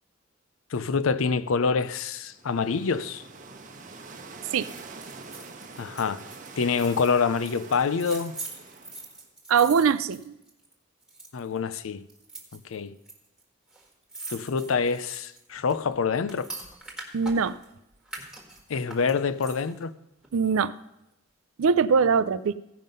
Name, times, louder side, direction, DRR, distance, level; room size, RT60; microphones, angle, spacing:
voice 1, 0.7-3.2 5.8-6.2 6.6-8.3 11.3-12.0 12.5-12.9 14.3-16.5 18.7-19.9, left 5 dB, 80° left, 0.5 m, -26 dB
sound 1, 2.2-9.2, right 4 dB, 40° right, 0.8 m, -45 dB
sound 2, 4.6-10.7 11.0-11.6 12.1-13.1 13.4-13.5 13.7-17.7 18.1-19.8 20.2-20.3, right 3 dB, 5° right, 1.5 m, -43 dB
voice 2, 9.5-10.3 17.1-17.6 20.3-20.7 21.6-22.5, right 6 dB, 90° right, 0.4 m, -22 dB
15.5 x 5.6 x 5.3 m
head